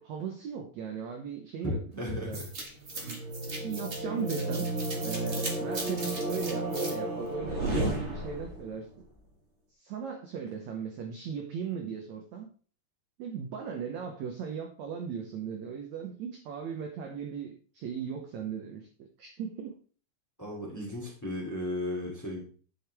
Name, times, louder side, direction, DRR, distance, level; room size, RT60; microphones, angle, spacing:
voice 1, 0.0-2.4 3.0-3.2 3.5-4.7 5.0-8.9 9.8-12.5 13.2-19.8, right 6 dB, 75° right, 3 dB, 1.7 m, -38 dB
voice 2, 1.6-2.4 2.9-3.2 20.4-22.4, left 1 dB, 5° left, -2 dB, 1.8 m, -35 dB
sound 1, 2.3-8.7, right 2 dB, 55° right, 0.7 m, -33 dB
10.0 x 6.8 x 3.4 m, 0.41 s
omnidirectional pair, 4.3 m